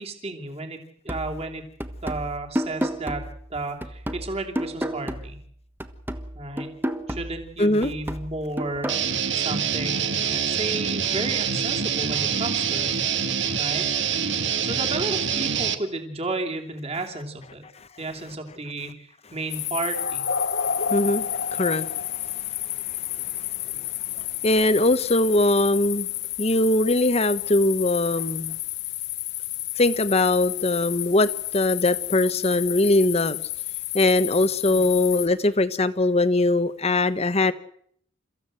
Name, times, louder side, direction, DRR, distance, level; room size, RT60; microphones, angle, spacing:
voice 1, 0.0-1.6 2.0-3.2 3.5-5.4 6.3-6.7 7.1-12.9 13.6-13.9 14.6-17.6 18.0-20.2 34.7-34.9, right 2 dB, 30° right, 3 dB, 2.9 m, -33 dB
sound 1, 1.1-5.5 5.8-9.1, equal, 10° right, 1.2 m, -32 dB
voice 2, 7.6-7.9 20.8-23.9 24.4-26.1 26.4-28.6 29.8-33.4 33.9-37.5, left 2 dB, 30° left, 12 dB, 1.0 m, -22 dB
Guitar, 8.9-15.8, right 7 dB, 55° right, 1.7 m, -25 dB
sound 2, 19.5-35.3, left 11 dB, 50° left, 0.8 m, -30 dB
30.0 x 15.0 x 7.7 m, 0.66 s
head